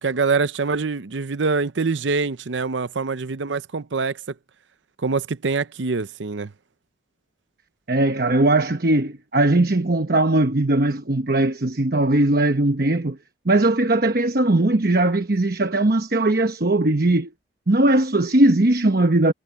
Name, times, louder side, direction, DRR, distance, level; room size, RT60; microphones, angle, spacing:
voice 1, 0.0-4.2 5.0-6.5, right 4 dB, 80° right, 0.7 m, -24 dB
voice 2, 7.9-13.2 13.4-17.3 17.7-19.3, right 2 dB, 55° right, 1.1 m, -19 dB
head